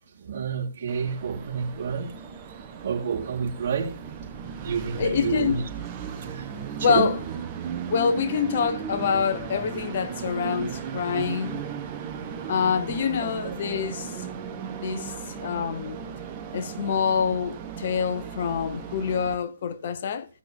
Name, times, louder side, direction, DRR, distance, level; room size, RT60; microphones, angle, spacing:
voice 1, 0.1-2.2 2.8-4.0 4.6-5.6 6.3-6.5 6.8-7.1 13.4-13.5, right 6 dB, 40° right, 3.1 m, -29 dB
Train, 0.9-19.3, right 7 dB, 25° right, 1.2 m, -36 dB
voice 2, 5.0-5.6 6.8-7.2 7.9-11.6 12.5-14.1 14.8-15.1 15.4-16.0 16.5-20.3, left 6 dB, 45° left, 0.8 m, -26 dB
15.5 x 6.0 x 3.5 m
figure-of-eight pair, 140°, 0 cm